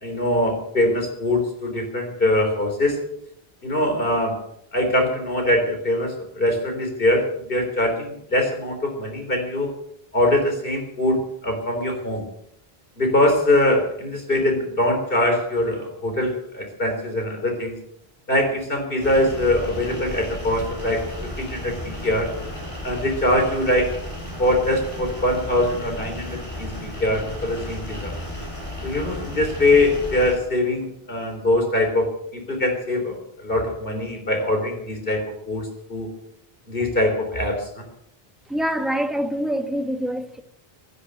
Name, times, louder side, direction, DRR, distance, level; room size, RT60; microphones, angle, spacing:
voice 1, 0.0-3.0 3.6-4.4 4.7-9.7 10.1-12.3 13.0-17.8 18.3-21.0 21.4-22.3 22.8-23.9 24.4-28.1 28.8-36.1 36.7-37.9, left 1 dB, 60° left, 3.9 m, -22 dB
sound 1, 19.0-30.4, left 1 dB, 30° left, 7.1 m, -34 dB
voice 2, 38.5-40.4, equal, ahead, 1.3 m, -25 dB
16.0 x 13.5 x 6.7 m
omnidirectional pair, 1.0 m